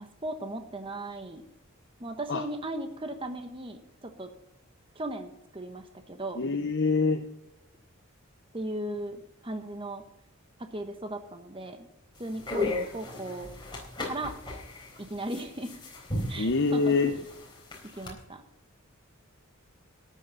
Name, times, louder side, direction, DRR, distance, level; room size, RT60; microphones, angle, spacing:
voice 1, 0.0-1.4 2.0-4.3 4.9-6.4 8.5-10.0 10.6-11.9 12.2-13.5 14.0-14.4 15.0-15.7 16.3-16.9 18.0-18.4, right 1 dB, 25° right, 7 dB, 1.1 m, -37 dB
voice 2, 6.4-7.2 16.4-17.1, left 4 dB, 55° left, 6 dB, 0.8 m, -25 dB
sound 1, 12.2-18.1, left 2 dB, 20° left, 3.8 m, -36 dB
13.0 x 9.7 x 5.6 m, 0.84 s
head